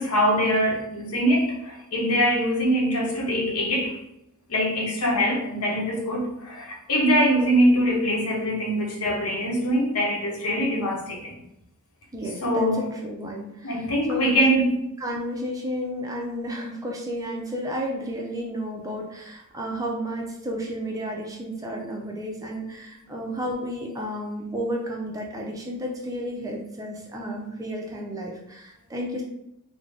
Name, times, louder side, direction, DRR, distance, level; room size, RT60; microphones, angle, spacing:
voice 1, 0.0-4.0 4.5-11.3 12.4-12.9 13.6-14.7, equal, 80° left, -1 dB, 0.9 m, -23 dB
voice 2, 12.1-14.6 15.0-29.2, equal, 15° right, 0 dB, 0.4 m, -32 dB
3.6 x 2.0 x 3.3 m, 0.84 s
head